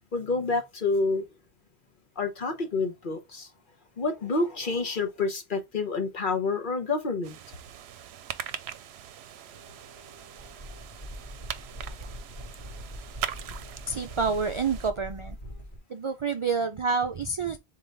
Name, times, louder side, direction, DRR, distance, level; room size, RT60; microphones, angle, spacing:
voice 1, 0.1-1.3 2.2-3.5 4.0-7.4, left 3 dB, 50° left, 1.2 m, -28 dB
sound 1, 7.2-14.9, right 10 dB, 75° right, 0.8 m, -41 dB
sound 2, 9.5-15.8, equal, 35° left, 1.5 m, -43 dB
voice 2, 13.9-15.4 15.9-17.6, right 5 dB, 55° right, 0.3 m, -28 dB
3.9 x 3.9 x 3.3 m
omnidirectional pair, 1.1 m